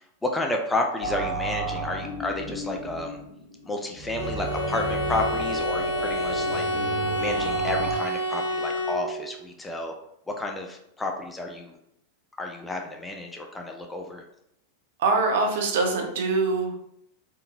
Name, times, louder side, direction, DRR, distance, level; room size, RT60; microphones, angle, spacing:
voice 1, 0.2-3.2 3.7-6.6 7.2-9.9 10.3-11.8 12.4-14.2, left 2 dB, 10° left, 2 dB, 0.4 m, -31 dB
sound 1, 1.0-8.0, right 2 dB, 55° left, 1.3 m, -33 dB
Bowed string instrument, 4.1-9.4, equal, 75° left, 0.7 m, -29 dB
voice 2, 15.0-16.8, right 3 dB, 55° right, 2 dB, 0.6 m, -23 dB
3.7 x 2.6 x 2.2 m, 0.79 s
figure-of-eight pair, 90°, 0 cm